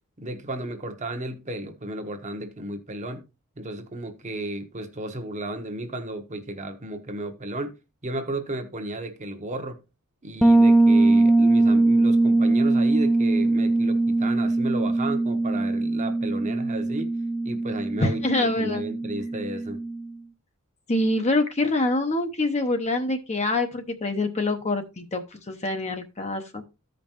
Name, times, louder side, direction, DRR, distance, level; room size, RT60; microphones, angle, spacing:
voice 1, 0.2-3.2 3.6-7.7 8.0-9.8 10.2-17.1 17.4-19.8, right 1 dB, 35° right, 1.1 m, -33 dB
Bass guitar, 10.4-20.1, right 2 dB, 5° left, 0.5 m, -21 dB
voice 2, 18.0-18.9 20.9-26.6, left 2 dB, 30° left, 0.8 m, -25 dB
14.5 x 5.2 x 2.9 m
head